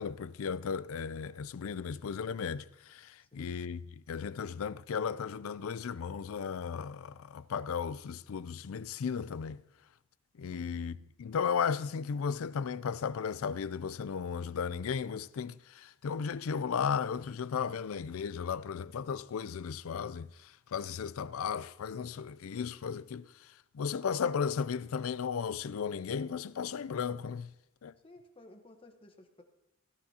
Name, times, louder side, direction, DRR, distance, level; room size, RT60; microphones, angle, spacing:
voice 1, 0.0-9.6 10.4-23.3 23.7-27.5 27.8-27.9, left 6 dB, 75° left, 0.4 m, -35 dB
voice 2, 3.2-3.5 10.5-10.7 28.0-29.4, left 2 dB, 25° left, 1.1 m, -56 dB
17.5 x 11.5 x 2.8 m
head